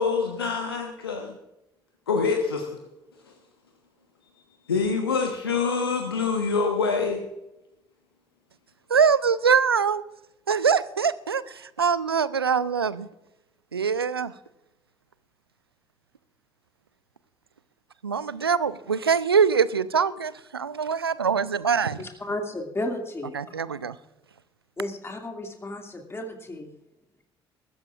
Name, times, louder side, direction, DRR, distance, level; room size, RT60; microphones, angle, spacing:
voice 1, 0.0-1.3 2.1-2.7 4.7-7.2, left 4 dB, 80° left, 3 dB, 1.2 m, -25 dB
voice 2, 8.9-10.0 10.5-13.1 13.7-14.3 18.0-22.0 23.3-24.0, right 6 dB, 85° right, 18 dB, 0.5 m, -23 dB
voice 3, 22.0-23.6 24.8-26.7, left 1 dB, 20° left, 2 dB, 2.4 m, -33 dB
21.0 x 14.0 x 2.5 m, 0.91 s
figure-of-eight pair, 50°, 12 cm